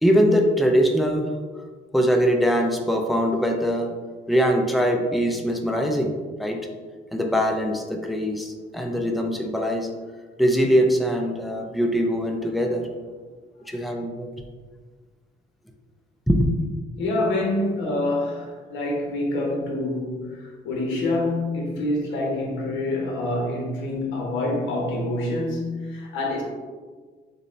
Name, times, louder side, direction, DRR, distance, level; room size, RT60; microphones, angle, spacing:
voice 1, 0.0-1.3 1.9-3.9 4.3-6.1 6.4-6.7 7.1-9.9 10.4-12.9 13.7-14.3 16.3-16.5, equal, ahead, 2 dB, 0.4 m, -22 dB
voice 2, 17.0-26.4, left 1 dB, 80° left, -1 dB, 1.1 m, -26 dB
6.6 x 2.2 x 2.6 m, 1.4 s
cardioid pair, 135°, 19 cm